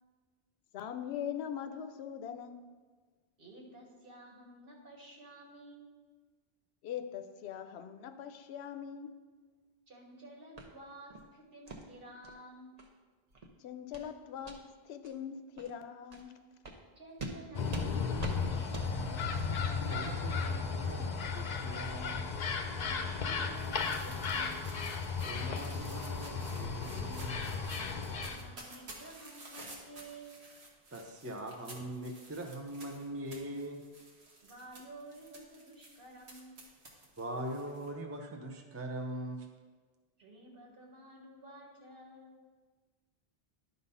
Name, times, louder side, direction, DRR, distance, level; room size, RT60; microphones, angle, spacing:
voice 1, 0.7-2.6 6.8-9.1 13.6-16.3, left 8 dB, 80° left, 8 dB, 0.8 m, -41 dB
voice 2, 3.4-5.9 9.9-12.8 17.0-19.3 22.7-24.6 27.8-30.4 34.4-36.6 40.2-42.4, right 1 dB, 60° right, -2 dB, 1.8 m, -52 dB
sound 1, 10.6-10.7 11.1-11.3 11.7-11.8 12.2-12.3 12.8-12.9 13.3-13.5 13.9-14.1 14.4-14.6 15.0-15.1 15.6-15.7 16.1-16.2 16.6-16.8 17.2-17.4 17.7-17.9 18.2-18.4 18.7-18.9, right 2 dB, 40° right, 0.9 m, -43 dB
sound 2, 17.5-28.5, left 5 dB, 50° left, 0.7 m, -35 dB
voice 3, 19.9-22.3 25.2-27.3 30.9-33.8 37.2-39.5, right 1 dB, 15° right, 3 dB, 0.6 m, -42 dB
sound 3, 22.8-37.9, right 2 dB, 90° right, 1.6 m, -53 dB
11.0 x 4.0 x 5.5 m, 1.4 s
omnidirectional pair, 1.1 m